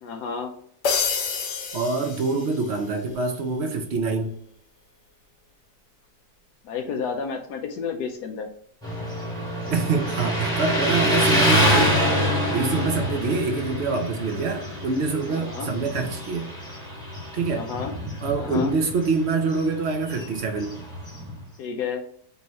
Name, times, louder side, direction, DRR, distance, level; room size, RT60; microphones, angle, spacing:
voice 1, 0.0-0.5 6.6-8.5 15.3-15.7 17.5-17.9 18.4-18.7 21.6-22.0, left 6 dB, 85° left, 3 dB, 1.2 m, -31 dB
sound 1, 0.8-2.9, left 5 dB, 60° left, 0.9 m, -28 dB
voice 2, 1.7-4.3 9.7-11.9 12.5-16.5 17.3-17.7 18.2-20.8, right 4 dB, 55° right, 4 dB, 0.8 m, -25 dB
Motorcycle, 8.8-21.4, equal, 5° left, 1.2 m, -26 dB
5.4 x 2.8 x 2.9 m, 0.65 s
omnidirectional pair, 1.7 m